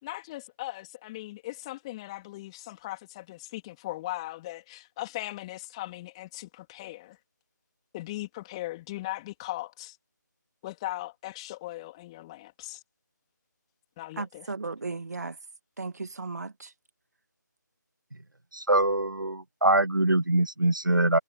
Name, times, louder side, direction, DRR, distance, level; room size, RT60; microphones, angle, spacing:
voice 1, 0.0-7.2 7.9-10.0 10.6-12.8 14.0-14.5, left 17 dB, 15° left, 3.2 m, -38 dB
voice 2, 14.2-15.4 15.8-16.7, right 3 dB, 55° right, 2.2 m, -35 dB
voice 3, 18.5-21.2, right 2 dB, 85° right, 1.1 m, -23 dB
figure-of-eight pair, 155°, 10 cm